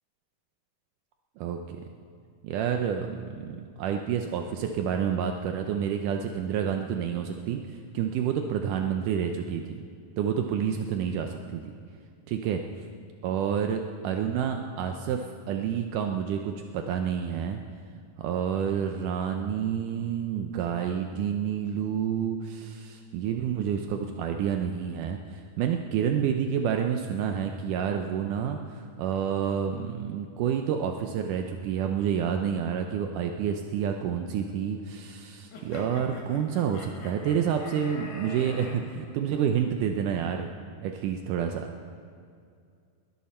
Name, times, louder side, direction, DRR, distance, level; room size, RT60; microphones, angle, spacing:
voice 1, 1.4-1.8 2.4-9.9 10.2-11.6 12.3-12.6 13.2-17.6 18.2-40.5 40.8-41.7, right 8 dB, 85° right, 4 dB, 1.8 m, -29 dB
sound 1, 35.5-38.8, left 3 dB, 80° left, 4.0 m, -43 dB
21.5 x 13.0 x 4.3 m, 2.3 s
omnidirectional pair, 4.6 m